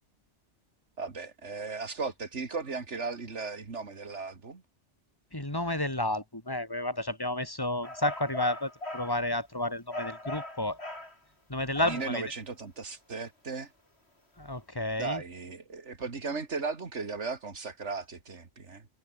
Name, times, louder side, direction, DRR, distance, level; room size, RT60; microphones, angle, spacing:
voice 1, 1.0-4.6 11.8-13.7 15.0-18.9, right 4 dB, 80° right, 2.6 m, -36 dB
voice 2, 5.3-10.8 11.5-12.2 14.4-15.2, left 1 dB, 20° left, 3.5 m, -31 dB
sound 1, 7.8-9.2 9.9-11.2 11.8-12.2, left 1 dB, 65° left, 7.4 m, -39 dB
omnidirectional pair, 1.2 m